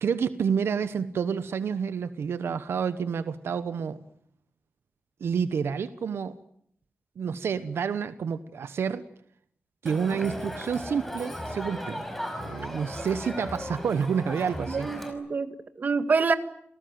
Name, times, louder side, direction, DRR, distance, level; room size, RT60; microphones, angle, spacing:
voice 1, 0.0-4.0 5.2-6.3 7.2-9.0 9.8-12.0 12.4-14.9, right 6 dB, 85° right, 13 dB, 1.1 m, -29 dB
Crowd, 9.9-15.1, equal, 5° left, 5.3 m, -36 dB
voice 2, 14.7-16.3, right 4 dB, 45° right, 10 dB, 1.7 m, -26 dB
28.5 x 18.0 x 9.5 m, 0.71 s
wide cardioid pair, 145°, 4 cm